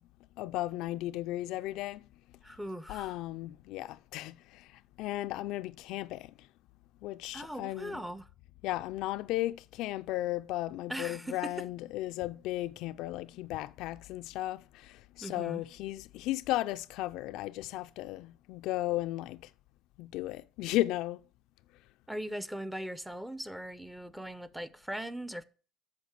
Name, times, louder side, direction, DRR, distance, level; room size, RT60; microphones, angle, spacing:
voice 1, 0.4-2.1 2.9-4.7 5.0-6.3 7.0-8.0 8.6-19.4 20.0-21.2, left 16 dB, 80° left, 0.4 m, -35 dB
voice 2, 2.4-3.1 7.3-8.3 10.9-11.5 15.2-15.6 22.1-25.4, right 1 dB, 5° right, 0.6 m, -40 dB
8.3 x 6.4 x 8.0 m
cardioid pair, 130°, 0 cm